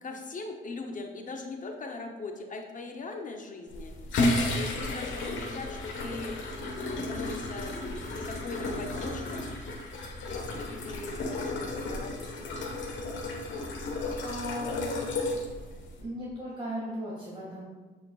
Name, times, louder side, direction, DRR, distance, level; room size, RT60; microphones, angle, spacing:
voice 1, 0.0-3.9 4.5-6.3 6.7-9.5 10.3-13.0, left 3 dB, 40° left, 3 dB, 0.8 m, -40 dB
sound 1, 3.7-16.0, left 2 dB, 70° left, 1.3 m, -33 dB
voice 2, 14.2-14.9 16.0-17.6, equal, 25° right, -6 dB, 1.9 m, -37 dB
8.9 x 5.1 x 2.4 m, 1.3 s
cardioid pair, 90°, 20 cm